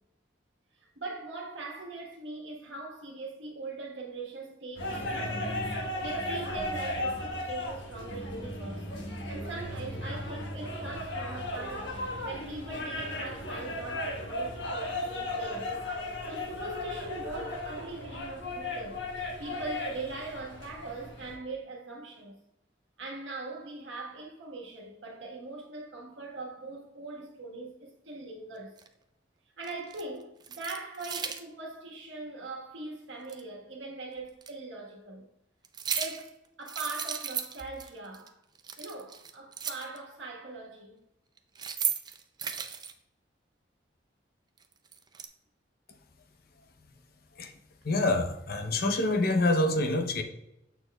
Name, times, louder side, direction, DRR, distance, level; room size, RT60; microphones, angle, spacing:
voice 1, 0.7-5.6 6.0-8.9 9.3-15.7 16.2-22.3 23.0-28.8 29.6-35.3 36.0-38.4 38.8-41.0, right 3 dB, 80° right, 1.3 m, -41 dB
sound 1, 4.8-21.4, left 1 dB, 70° left, 1.3 m, -36 dB
sound 2, 28.8-28.9 29.6-30.0 30.4-31.4 33.3-33.4 34.4-34.5 35.6-36.3 36.6-37.9 38.1-38.3 38.5-40.0 41.4-42.9 44.6-45.3, right 7 dB, 20° right, 0.4 m, -35 dB
voice 2, 47.8-50.2, left 2 dB, 55° left, 0.7 m, -26 dB
7.1 x 6.3 x 2.3 m
head